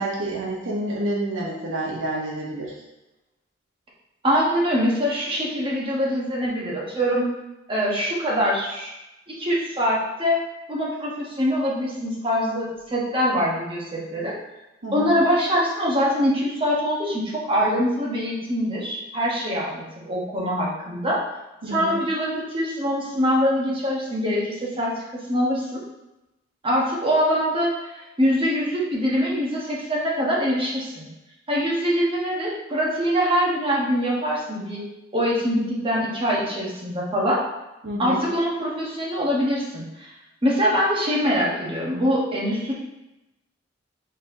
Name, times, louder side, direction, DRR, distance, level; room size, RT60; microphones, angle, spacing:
voice 1, 0.0-2.7 14.8-15.1 21.6-22.0 37.8-38.2, right 1 dB, 80° right, -4 dB, 0.9 m, -28 dB
voice 2, 4.2-7.3 7.7-8.9 9.3-10.4 10.7-14.3 14.9-21.2 21.7-25.8 26.6-31.1 31.5-34.8 35.1-37.4 38.0-40.1 40.4-42.7, equal, 25° right, -4 dB, 1.0 m, -23 dB
4.2 x 4.0 x 2.7 m, 0.95 s
head